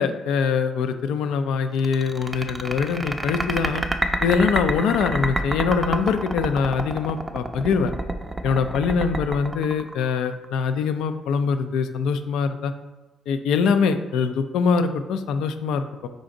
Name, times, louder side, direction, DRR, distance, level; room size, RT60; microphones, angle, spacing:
voice 1, 0.0-3.8 4.2-7.9 8.4-12.7 13.3-16.1, left 5 dB, 90° left, 9 dB, 0.3 m, -23 dB
sound 1, 1.8-10.5, right 1 dB, 15° right, 0.4 m, -27 dB
5.0 x 2.5 x 3.8 m, 1.1 s
cardioid pair, 90°, 0 cm